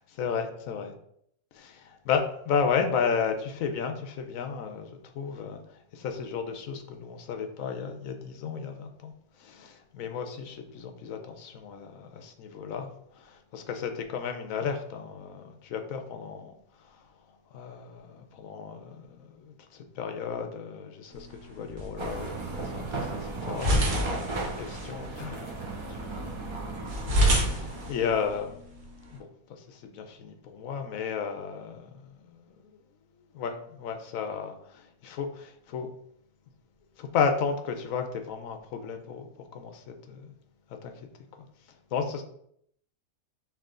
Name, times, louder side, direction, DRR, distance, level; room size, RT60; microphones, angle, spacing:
voice 1, 0.2-0.9 1.6-5.6 5.9-9.1 9.4-12.9 13.2-16.5 17.5-22.3 22.6-25.6 25.9-27.0 27.3-28.6 29.1-31.9 32.2-32.5 33.3-35.9 37.0-39.3 39.5-40.3 40.8-40.9 41.9-42.2, left 6 dB, 75° left, 6 dB, 1.0 m, -33 dB
sound 1, 21.1-29.2, equal, 85° right, 1.5 m, -31 dB
sound 2, 22.0-27.9, right 3 dB, 35° right, 0.5 m, -35 dB
4.7 x 3.0 x 3.7 m, 0.71 s
omnidirectional pair, 1.5 m